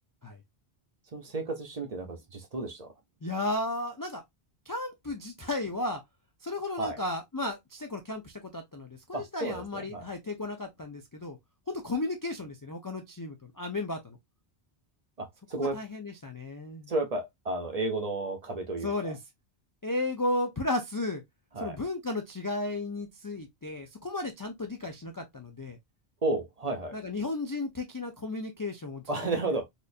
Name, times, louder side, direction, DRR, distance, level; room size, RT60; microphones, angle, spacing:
voice 1, 1.1-2.9 6.8-7.0 9.1-10.0 15.2-15.8 16.9-19.1 21.5-21.8 26.2-26.9 29.1-29.6, right 2 dB, 40° right, 0.8 m, -32 dB
voice 2, 3.2-4.2 4.7-6.0 6.4-11.4 11.7-14.2 15.6-16.9 18.8-19.2 19.8-21.2 21.6-25.8 26.9-29.1, left 2 dB, 35° left, 0.3 m, -34 dB
4.2 x 2.6 x 2.5 m
omnidirectional pair, 1.1 m